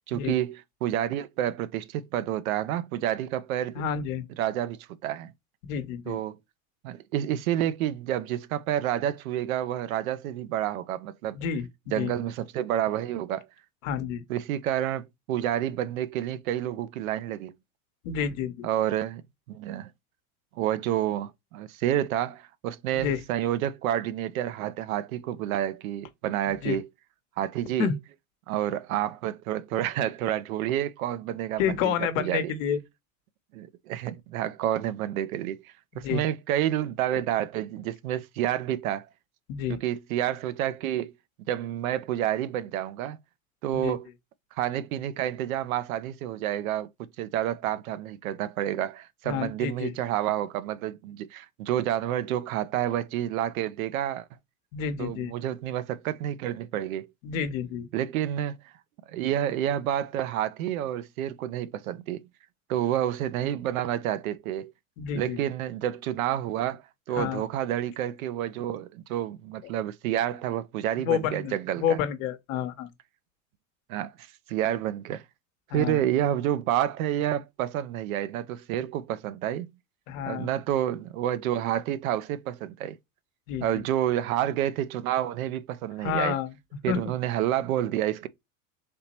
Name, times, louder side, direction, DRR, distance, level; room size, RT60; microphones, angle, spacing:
voice 1, 0.1-3.8 4.4-5.3 6.1-6.4 6.8-11.4 11.9-13.5 14.3-17.5 18.6-19.2 19.5-19.9 20.6-26.9 27.4-27.9 28.5-32.5 33.5-39.1 39.7-41.1 41.5-43.2 43.6-44.1 44.6-46.9 47.2-54.3 55.0-57.1 57.9-58.6 59.1-62.3 62.7-64.7 65.1-66.8 67.1-72.0 73.9-75.2 75.7-79.7 80.3-83.0 83.6-86.4 86.8-88.3, right 11 dB, 85° right, 0.6 m, -29 dB
voice 2, 3.7-4.2 5.6-6.2 11.3-11.7 11.9-12.1 13.8-14.2 18.0-18.7 22.9-23.2 26.6-26.8 27.8-28.0 31.6-32.8 36.0-36.2 39.5-39.8 43.7-43.9 49.3-49.9 54.7-55.3 57.2-57.9 65.0-65.4 67.1-67.4 71.0-72.9 75.7-76.0 80.1-80.5 83.5-83.6 86.0-86.5 86.9-87.0, left 8 dB, 75° left, 1.0 m, -29 dB
3.5 x 2.9 x 4.2 m
hypercardioid pair, 95°, 40 cm